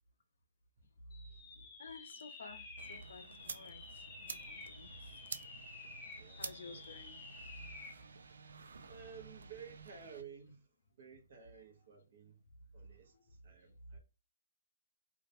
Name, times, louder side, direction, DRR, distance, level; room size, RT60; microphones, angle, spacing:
sound 1, 1.1-8.0, left 4 dB, 10° left, 0.6 m, -52 dB
voice 1, 1.3-5.2 6.4-7.2 13.1-13.3, left 3 dB, 65° left, 0.5 m, -53 dB
sound 2, 2.8-10.2, right 4 dB, 75° right, 0.3 m, -51 dB
voice 2, 6.0-6.9 8.9-12.4 12.7-14.0, right 7 dB, 50° right, 0.7 m, -54 dB
2.2 x 2.1 x 2.7 m
hypercardioid pair, 160°, 0 cm